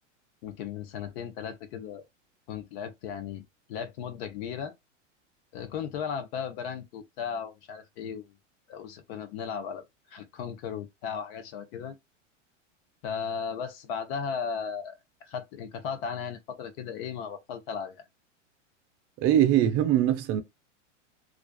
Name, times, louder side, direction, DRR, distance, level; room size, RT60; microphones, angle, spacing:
voice 1, 0.4-2.0 2.5-3.4 3.7-4.7 5.5-8.3 8.7-9.8 10.1-11.9 13.0-14.9 15.2-18.0, left 7 dB, 50° left, 0.7 m, -36 dB
voice 2, 19.2-20.4, right 11 dB, 40° right, 0.6 m, -22 dB
2.4 x 2.3 x 2.3 m
hypercardioid pair, 115°, 37 cm